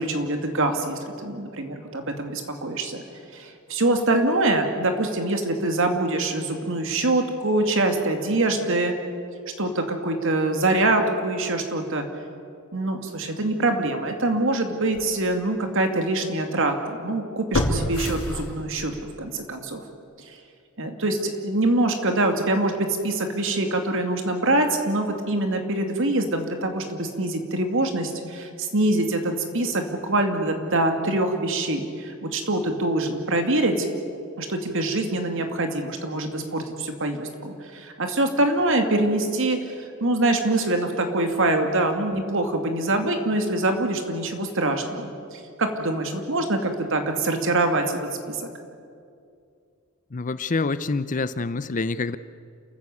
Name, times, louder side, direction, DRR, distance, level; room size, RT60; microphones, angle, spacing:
voice 1, 0.0-3.0 3.3-8.9 9.6-12.1 12.7-18.9 19.2-19.8 20.8-33.9 34.4-39.6 40.0-48.0 48.3-48.5, right 2 dB, 60° right, 5 dB, 2.5 m, -24 dB
sound 1, 14.2-14.4 15.0-15.1 17.5-19.0 19.4-19.5, left 1 dB, 75° left, 2.9 m, -27 dB
voice 2, 50.1-52.2, left 3 dB, 35° left, 15 dB, 0.6 m, -26 dB
29.0 x 14.5 x 8.5 m, 2.4 s
head